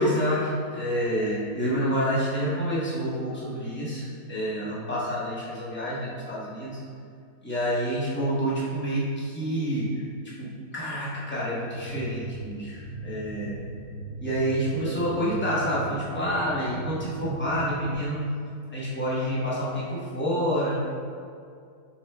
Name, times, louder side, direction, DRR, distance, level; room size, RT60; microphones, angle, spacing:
voice 1, 0.0-6.8 7.4-9.9 10.4-13.5 14.2-18.3 18.7-20.7, equal, 10° left, -8 dB, 0.6 m, -28 dB
sound 1, 11.7-18.0, right 3 dB, 10° right, 0.9 m, -38 dB
5.9 x 2.2 x 3.4 m, 2.3 s
omnidirectional pair, 1.7 m